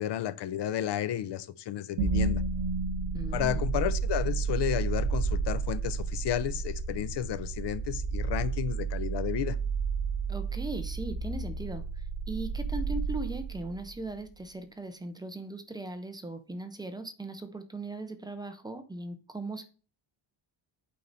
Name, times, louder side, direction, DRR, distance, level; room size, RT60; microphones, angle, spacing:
voice 1, 0.0-2.4 3.3-9.6, left 11 dB, 55° left, 0.6 m, -32 dB
sound 1, 2.0-14.1, right 4 dB, 70° right, 1.1 m, -31 dB
voice 2, 3.1-3.7 10.3-19.6, right 2 dB, 10° right, 0.6 m, -39 dB
8.5 x 4.7 x 4.0 m
cardioid pair, 160°, 49 cm